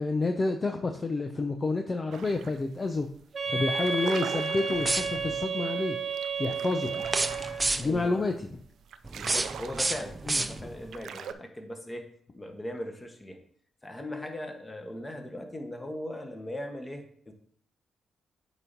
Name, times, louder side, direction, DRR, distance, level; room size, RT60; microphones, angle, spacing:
voice 1, 0.0-3.1 3.5-6.0 6.4-7.1 7.8-8.5 10.3-10.7, left 3 dB, 35° left, 4 dB, 0.6 m, -29 dB
sound 1, 2.1-2.6 3.0-3.2 3.5-11.3, right 7 dB, 75° right, 0.4 m, -41 dB
Wind instrument woodwind instrument, 3.3-7.8, right 5 dB, 45° right, 0.9 m, -32 dB
sound 2, 4.8-5.4 7.0-8.1 9.0-10.9, right 2 dB, 25° right, 0.5 m, -30 dB
voice 2, 7.8-8.3 9.1-12.1 12.3-13.4 13.8-17.3, left 1 dB, 20° left, 4 dB, 1.4 m, -39 dB
8.1 x 2.9 x 5.3 m, 0.64 s
supercardioid pair, 65°, 0 cm